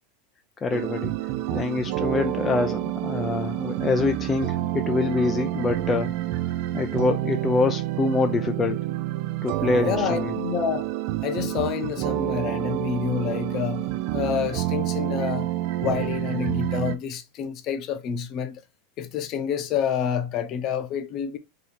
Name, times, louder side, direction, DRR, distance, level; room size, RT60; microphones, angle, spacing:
voice 1, 0.6-1.1 1.5-6.1 6.7-8.8 9.4-10.3, left 4 dB, 25° left, 0.4 m, -25 dB
sound 1, 0.7-17.0, right 14 dB, 60° right, 0.4 m, -28 dB
voice 2, 9.8-10.9 11.2-15.5 15.8-18.6 19.0-21.4, left 8 dB, 45° left, 0.7 m, -28 dB
2.8 x 2.7 x 4.1 m
hypercardioid pair, 100°, 0 cm